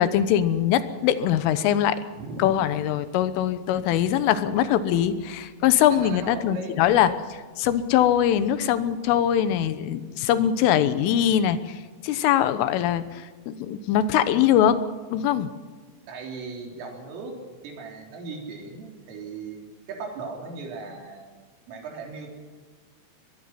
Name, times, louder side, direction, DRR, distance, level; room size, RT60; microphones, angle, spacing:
voice 1, 0.0-2.0 2.4-7.1 7.6-11.6 12.0-14.8 15.1-15.5, left 10 dB, 90° left, 12 dB, 3.6 m, -22 dB
voice 2, 2.1-2.6 4.0-4.1 5.9-7.0 16.1-17.4 17.6-21.3 21.7-22.3, right 4 dB, 85° right, 1 dB, 6.2 m, -37 dB
24.0 x 20.0 x 5.9 m, 1.4 s
omnidirectional pair, 5.7 m